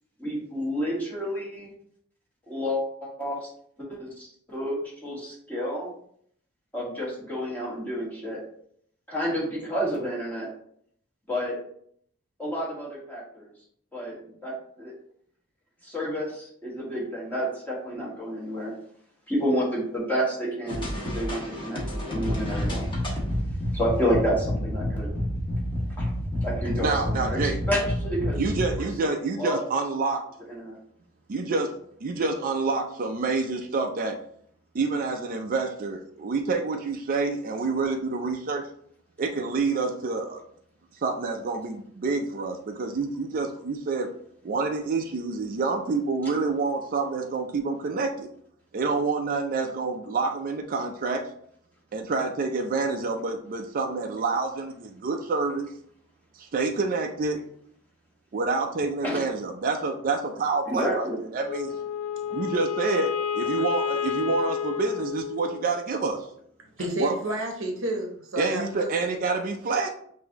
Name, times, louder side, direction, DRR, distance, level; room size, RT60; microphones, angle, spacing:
voice 1, 0.2-1.7 2.5-3.5 3.8-5.9 6.7-8.4 9.1-10.5 11.3-11.6 12.4-13.5 13.9-14.9 15.8-18.7 19.3-21.8 22.1-22.9 23.7-25.1 26.0-26.1 26.4-28.4 28.8-29.1 29.4-29.6 30.5-30.8 59.0-59.3 60.6-61.2, equal, 10° left, -6 dB, 1.4 m, -30 dB
sound 1, 20.7-28.7, equal, 25° left, 1.1 m, -29 dB
voice 2, 26.8-27.6 28.4-30.2 31.3-31.7 32.0-34.2 34.7-38.7 39.2-40.4 41.0-44.1 44.4-48.3 48.7-51.2 51.9-55.7 56.4-57.4 58.3-61.1 61.3-61.7 62.3-66.2 67.0-67.2 68.4-69.9, right 4 dB, 40° right, 3 dB, 0.4 m, -27 dB
Wind instrument woodwind instrument, 61.5-65.9, left 8 dB, 70° left, 0.4 m, -30 dB
voice 3, 66.8-69.2, equal, 65° right, 2 dB, 0.8 m, -30 dB
5.8 x 2.7 x 2.9 m, 0.65 s
head